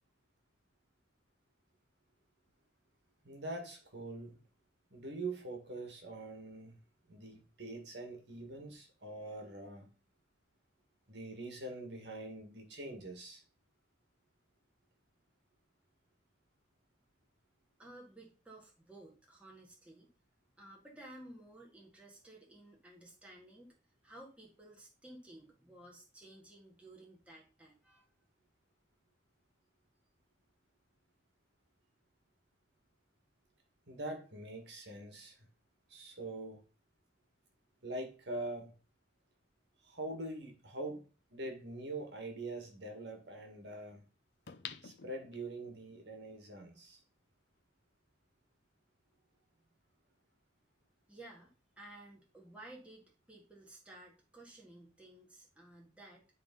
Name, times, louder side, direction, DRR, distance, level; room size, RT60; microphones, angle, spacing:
voice 1, 3.2-4.4 4.9-6.8 7.1-9.9 11.1-13.4 33.9-35.4 35.9-36.6 37.8-38.7 39.8-44.0 44.8-47.0, right 2 dB, 60° right, 3 dB, 2.0 m, -44 dB
voice 2, 17.8-20.1 20.6-23.7 24.0-28.1 51.1-56.3, right 1 dB, 5° right, -3 dB, 1.9 m, -55 dB
sound 1, 44.5-45.8 46.3-46.4, left 8 dB, 60° left, 0.7 m, -48 dB
10.5 x 3.6 x 5.4 m, 0.34 s
head